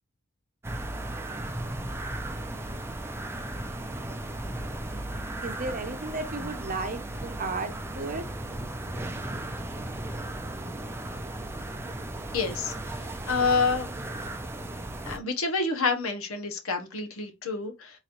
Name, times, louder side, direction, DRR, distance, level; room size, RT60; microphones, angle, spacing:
sound 1, 0.6-15.2, right 1 dB, 10° right, 0.5 m, -36 dB
voice 1, 5.4-8.2, right 3 dB, 40° right, 0.8 m, -34 dB
voice 2, 12.3-13.9 15.1-18.0, left 4 dB, 75° left, 1.0 m, -28 dB
3.9 x 3.1 x 2.5 m
head